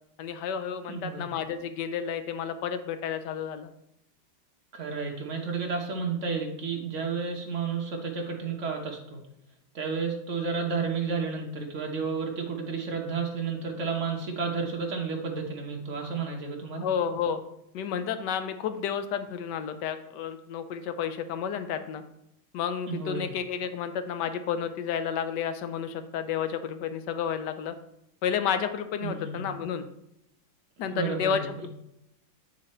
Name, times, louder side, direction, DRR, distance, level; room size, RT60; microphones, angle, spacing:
voice 1, 0.2-3.7 16.8-17.4 17.7-22.0 22.5-27.7 28.2-29.9 30.8-31.7, left 7 dB, 70° left, 9 dB, 1.1 m, -31 dB
voice 2, 0.9-1.3 4.7-9.2 9.7-16.9 22.9-23.3 29.0-29.4 30.8-31.6, right 5 dB, 45° right, 1 dB, 1.2 m, -31 dB
9.2 x 4.1 x 4.2 m, 0.82 s
omnidirectional pair, 2.2 m